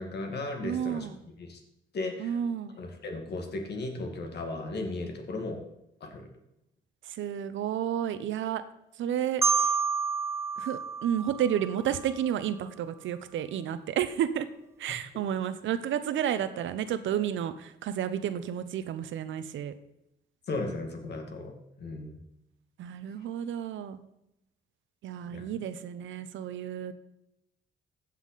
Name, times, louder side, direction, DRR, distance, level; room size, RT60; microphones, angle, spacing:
voice 1, 0.0-1.1 1.4-1.6 1.9-2.4 2.8-5.6 6.0-6.3 20.5-22.2 25.3-25.5, left 2 dB, 55° left, 3 dB, 2.2 m, -36 dB
voice 2, 0.6-1.2 2.2-2.8 7.1-8.6 9.0-9.7 10.6-14.5 14.8-19.7 22.8-24.0 25.0-26.9, right 9 dB, 75° right, 12 dB, 0.8 m, -31 dB
Marimba xylophone, 9.4-12.3, right 4 dB, 15° right, 0.3 m, -29 dB
15.0 x 5.8 x 4.1 m, 0.85 s
cardioid pair, 90°, 20 cm